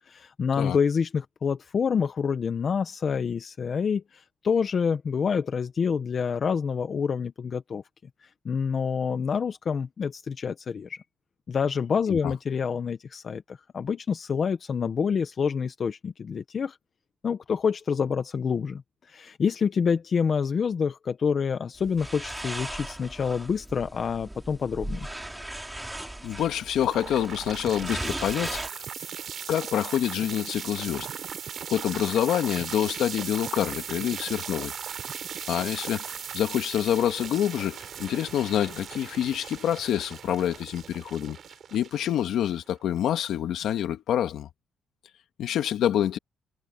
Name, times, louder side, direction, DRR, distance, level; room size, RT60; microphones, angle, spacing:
voice 1, 0.1-7.8 8.2-11.0 11.5-16.8 17.2-25.1, left 6 dB, 45° left, 1.1 m, -27 dB
sound 1, 21.8-28.7, right 1 dB, 5° right, 4.6 m, -37 dB
voice 2, 26.2-28.8 29.5-31.1 31.7-34.7 35.5-41.4 41.7-44.5 45.4-46.2, left 10 dB, 80° left, 1.9 m, -27 dB
sound 2, 26.8-42.8, right 8 dB, 55° right, 3.7 m, -38 dB
cardioid pair, 110°, 0 cm